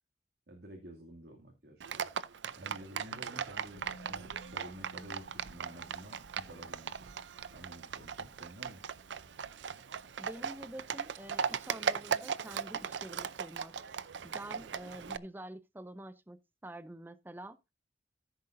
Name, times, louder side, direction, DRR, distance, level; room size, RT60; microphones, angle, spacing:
voice 1, 0.5-2.0 2.5-7.1 7.5-8.8, right 1 dB, 70° right, 2.5 m, -51 dB
Livestock farm animals working animals, 1.8-15.2, right 6 dB, 85° right, 0.5 m, -38 dB
Musical instrument, 3.7-11.6 11.9-12.1, equal, 50° left, 2.1 m, -59 dB
voice 2, 10.2-13.7 14.2-16.4 16.6-17.6, right 1 dB, 10° right, 0.4 m, -47 dB
14.5 x 7.8 x 2.6 m
head